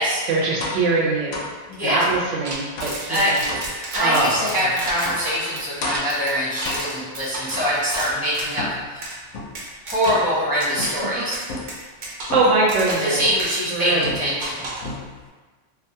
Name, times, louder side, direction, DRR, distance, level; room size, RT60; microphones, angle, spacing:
voice 1, 0.3-1.5 1.8-3.6 4.0-4.7 12.3-13.2 13.7-14.2, right 2 dB, 90° right, -3 dB, 1.0 m, -22 dB
sound 1, 0.6-0.9 1.3-1.6 2.1-2.3 2.8-3.1 3.5-3.7 4.3-4.6 5.1-5.3 5.8-6.2 6.7-7.1 7.5-8.0 8.6-9.7 10.0-10.4 10.8-11.1 11.5-11.8 12.3-12.7 13.2-13.5 14.0-14.5 14.8-15.3, left 2 dB, 80° left, 0.9 m, -33 dB
sound 2, 2.4-8.6 9.0-9.2 9.5-10.3 10.6-10.9 11.3-13.1 13.4-13.5 14.4-14.9, right 2 dB, 65° right, 0.8 m, -32 dB
voice 2, 3.7-9.1 9.8-11.4 13.0-14.7, equal, 25° left, -10 dB, 0.5 m, -24 dB
2.8 x 2.3 x 2.7 m, 1.3 s
omnidirectional pair, 1.2 m